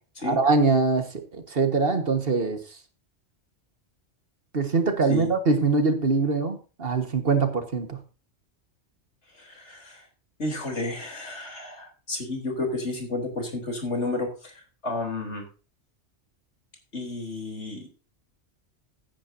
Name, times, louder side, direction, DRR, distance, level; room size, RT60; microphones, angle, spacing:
voice 1, 0.2-2.6 4.5-8.0, right 4 dB, 50° right, 7 dB, 1.7 m, -23 dB
voice 2, 9.3-10.0 10.4-15.5 16.9-17.9, left 2 dB, 70° left, 3 dB, 4.0 m, -31 dB
16.0 x 10.0 x 2.7 m, 0.33 s
omnidirectional pair, 1.2 m